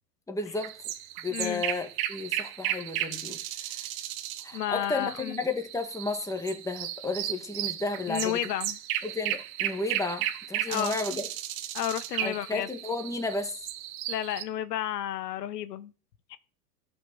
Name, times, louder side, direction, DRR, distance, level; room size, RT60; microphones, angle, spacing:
voice 1, 0.3-0.7 1.2-3.4 3.7-3.8 4.4-8.4 9.0-11.3 12.2-13.6, left 3 dB, 5° left, 1.8 m, -33 dB
sound 1, 0.6-14.4, right 12 dB, 60° right, 1.4 m, -35 dB
voice 2, 1.3-1.6 4.5-5.4 8.1-8.8 10.7-11.0 11.7-12.7 14.1-15.9 16.3-16.4, left 11 dB, 80° left, 1.0 m, -31 dB
12.0 x 5.4 x 6.3 m
hypercardioid pair, 105°, 48 cm